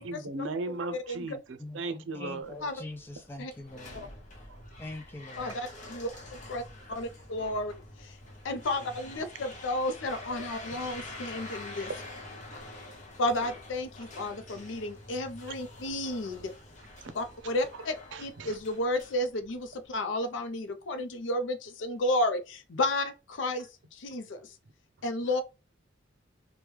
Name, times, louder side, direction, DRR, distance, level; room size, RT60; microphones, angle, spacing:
voice 1, 0.0-2.6 4.5-4.6 8.7-8.8 11.5-11.6 17.0-17.1 18.1-18.6, right 2 dB, 80° right, 0.5 m, -37 dB
voice 2, 1.6-4.1 4.8-5.6, left 2 dB, 10° left, 0.3 m, -43 dB
sound 1, 2.4-19.9, left 2 dB, 40° left, 0.8 m, -47 dB
voice 3, 5.4-6.1 6.5-6.6 6.9-7.7 8.0-8.2 8.4-11.9 13.2-16.5 17.1-17.9 18.2-24.5 25.0-25.4, left 1 dB, 80° left, 0.5 m, -32 dB
3.0 x 2.2 x 3.3 m
head